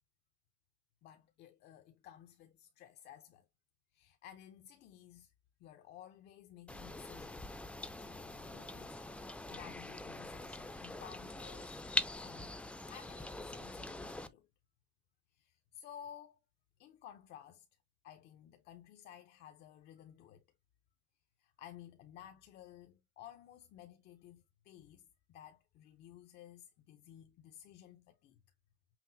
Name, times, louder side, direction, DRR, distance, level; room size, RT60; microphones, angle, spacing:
voice 1, 1.0-3.5 3.9-5.3 5.6-7.5 8.0-11.8 12.2-14.5 15.3-16.4 16.8-17.7 18.0-20.4 21.4-28.4, left 10 dB, 75° left, 0.6 m, -55 dB
sound 1, 6.7-14.3, left 2 dB, 5° left, 0.4 m, -43 dB
5.7 x 2.1 x 2.6 m
cardioid pair, 110°, 17 cm